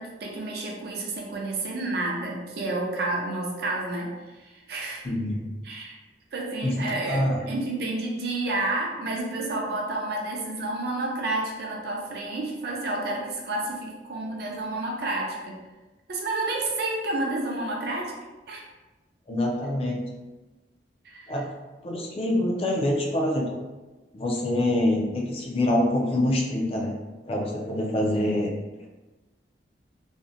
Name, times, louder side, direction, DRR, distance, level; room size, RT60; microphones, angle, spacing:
voice 1, 0.0-5.0 5.6-6.0 6.3-15.6 16.1-18.1 18.5-18.6 21.0-21.3, right 2 dB, 60° right, -1 dB, 0.5 m, -30 dB
voice 2, 5.0-5.6 6.6-7.4 19.3-20.0 21.3-21.5 21.8-23.6 24.1-27.0 27.3-28.5, left 1 dB, 30° left, -1 dB, 0.4 m, -25 dB
2.7 x 2.0 x 2.5 m, 1.2 s
head